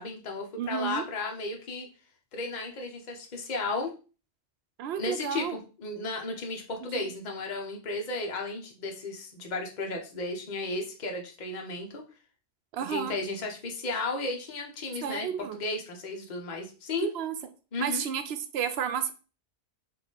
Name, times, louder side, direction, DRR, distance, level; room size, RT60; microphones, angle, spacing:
voice 1, 0.0-1.9 2.3-3.9 5.0-12.0 12.9-17.1 17.7-18.0, left 3 dB, 45° left, 2 dB, 0.9 m, -34 dB
voice 2, 0.6-1.0 4.8-5.6 6.9-7.1 12.7-13.1 15.0-15.6 17.0-17.3 17.8-19.1, right 8 dB, 75° right, 9 dB, 0.8 m, -31 dB
4.2 x 2.4 x 3.8 m, 0.34 s
omnidirectional pair, 1.1 m